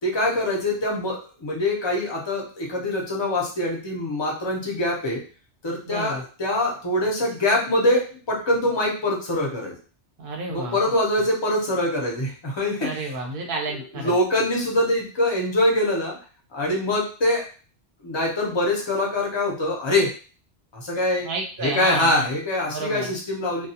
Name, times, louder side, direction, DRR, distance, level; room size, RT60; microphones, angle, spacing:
voice 1, 0.0-5.2 5.6-9.7 10.5-12.9 14.0-16.2 16.5-17.4 18.0-20.1 20.7-21.3 21.6-23.7, left 1 dB, 30° left, -2 dB, 0.6 m, -24 dB
voice 2, 5.9-6.2 10.2-10.8 12.8-14.2 21.2-22.3 22.6-23.1, right 2 dB, 55° right, 1 dB, 0.8 m, -31 dB
2.3 x 2.2 x 2.7 m, 0.38 s
omnidirectional pair, 1.2 m